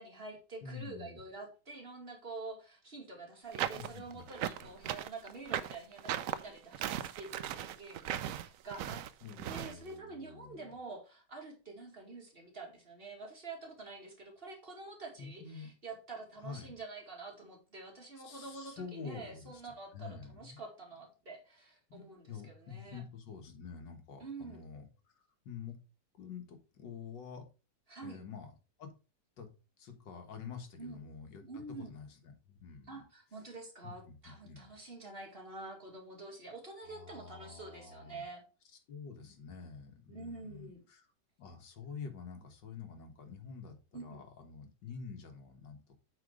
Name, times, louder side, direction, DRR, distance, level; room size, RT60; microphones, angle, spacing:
voice 1, 0.0-9.0 9.5-23.0 24.2-24.6 27.9-28.2 30.8-31.0 31.4-31.9 32.9-38.4 40.1-40.8 43.9-44.2, right 3 dB, 35° right, 0 dB, 2.3 m, -47 dB
voice 2, 0.6-1.2 3.8-4.3 9.2-10.7 15.2-15.7 16.4-16.7 18.2-20.6 21.9-25.8 26.1-27.4 28.0-28.5 28.8-28.9 29.4-29.5 29.8-33.0 33.8-34.7 36.8-38.2 38.9-41.1 41.4-46.0, left 6 dB, 85° left, 6 dB, 2.1 m, -48 dB
sound 1, 3.5-9.7, right 11 dB, 70° right, 0.7 m, -37 dB
8.0 x 4.2 x 4.8 m, 0.32 s
omnidirectional pair, 1.9 m